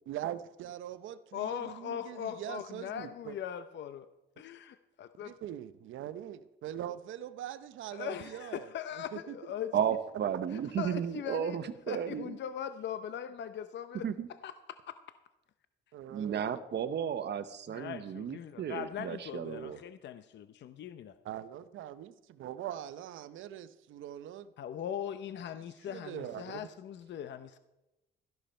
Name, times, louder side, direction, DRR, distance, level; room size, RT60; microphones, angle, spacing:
voice 1, 0.1-3.3 5.2-9.4 15.9-16.6 21.2-24.5 25.6-26.7, right 11 dB, 80° right, 13 dB, 0.8 m, -42 dB
voice 2, 1.3-4.1 4.4-5.3 7.9-9.8 10.5-11.6 11.9-15.0 17.7-21.2 24.6-27.6, left 9 dB, 65° left, 11 dB, 0.7 m, -40 dB
voice 3, 9.7-12.4 14.0-14.3 16.1-19.8, right 8 dB, 60° right, 12 dB, 1.0 m, -34 dB
13.5 x 11.5 x 4.4 m, 0.92 s
cardioid pair, 90°, 20 cm